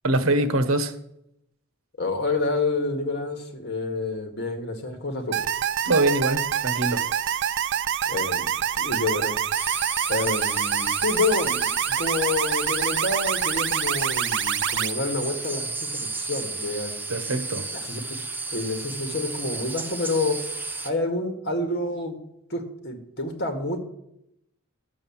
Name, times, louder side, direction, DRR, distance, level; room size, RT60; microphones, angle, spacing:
voice 1, 0.0-0.9 5.9-7.1 17.1-17.7, right 2 dB, 90° right, 1.1 m, -23 dB
voice 2, 2.0-5.4 8.1-8.5 8.7-9.3 10.1-16.9 17.7-18.2 18.5-20.4 20.8-22.2 22.5-23.8, left 2 dB, 55° left, 2.0 m, -28 dB
sound 1, 5.3-14.9, right 9 dB, 60° right, 0.5 m, -26 dB
sound 2, 9.5-20.9, right 3 dB, 10° right, 0.9 m, -32 dB
12.5 x 7.7 x 7.3 m
head